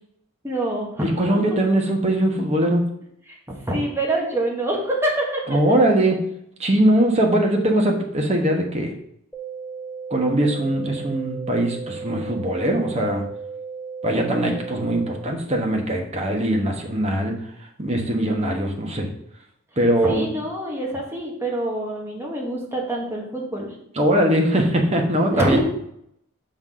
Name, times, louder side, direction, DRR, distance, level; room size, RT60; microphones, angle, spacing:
voice 1, 0.4-1.1 1.3-1.4 3.3-3.4 3.7-5.7 20.0-23.7 25.4-25.6, right 1 dB, 10° right, -2 dB, 1.6 m, -25 dB
voice 2, 1.0-2.8 5.5-6.2 6.6-8.9 10.1-13.2 14.0-17.3 17.8-19.1 19.8-20.2 23.9-25.6, right 1 dB, 30° right, 1 dB, 1.2 m, -21 dB
sound 1, 9.3-15.3, right 5 dB, 5° left, 0.6 m, -35 dB
6.4 x 3.8 x 6.2 m, 0.74 s
head